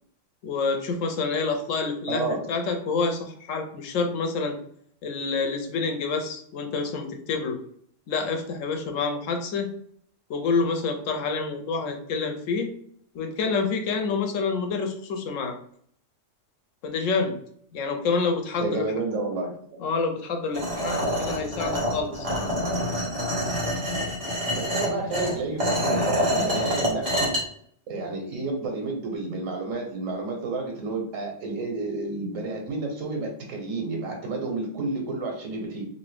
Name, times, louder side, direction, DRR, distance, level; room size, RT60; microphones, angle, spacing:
voice 1, 0.4-4.6 5.0-7.6 8.1-9.7 10.3-12.7 13.1-15.5 16.8-17.4 17.7-18.9 19.8-22.3, left 4 dB, 85° left, 5 dB, 1.0 m, -27 dB
voice 2, 2.1-2.4 18.6-19.6 24.6-27.3 27.9-35.8, right 3 dB, 85° right, 1 dB, 1.2 m, -30 dB
sound 1, 20.5-27.4, equal, 30° right, 1.1 m, -26 dB
2.7 x 2.6 x 3.3 m, 0.63 s
omnidirectional pair, 1.3 m